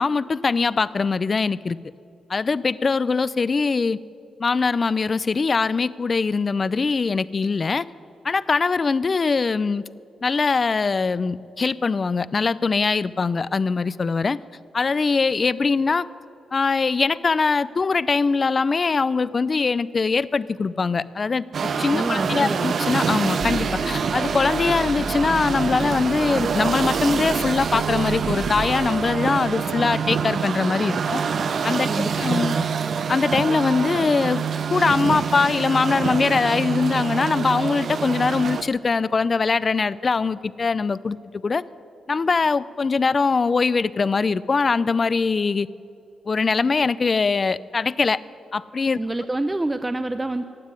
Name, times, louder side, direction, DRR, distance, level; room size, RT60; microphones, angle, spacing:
voice 1, 0.0-1.8 2.3-4.0 4.4-7.9 8.2-9.8 10.2-14.4 14.7-16.1 16.5-31.2 31.6-32.6 33.1-34.4 34.7-41.2 41.4-41.6 42.1-45.7 46.3-48.2 48.5-49.0, left 4 dB, 40° left, 18 dB, 0.4 m, -22 dB
sound 1, 21.5-38.6, right 6 dB, 60° right, 0.7 m, -26 dB
voice 2, 21.9-22.7 31.9-32.7 49.0-50.4, right 2 dB, 15° right, 9 dB, 0.5 m, -27 dB
sound 2, 23.4-29.7, right 3 dB, 40° right, 2.2 m, -34 dB
15.5 x 9.5 x 9.6 m, 2.5 s
cardioid pair, 90°, 0 cm